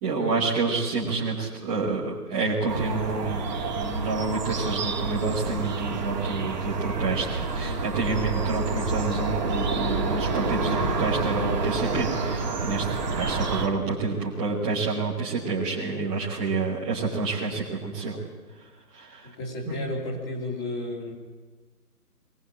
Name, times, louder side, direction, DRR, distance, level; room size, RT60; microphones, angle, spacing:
voice 1, 0.0-3.5 3.7-18.2 18.9-19.3 19.7-19.8, right 3 dB, 5° right, -11 dB, 1.0 m, -28 dB
sound 1, 2.7-13.7, right 3 dB, 25° right, 2.2 m, -28 dB
voice 2, 19.2-21.1, left 1 dB, 15° left, -2 dB, 3.0 m, -32 dB
22.5 x 18.0 x 8.8 m, 1.3 s
figure-of-eight pair, 155°, 48 cm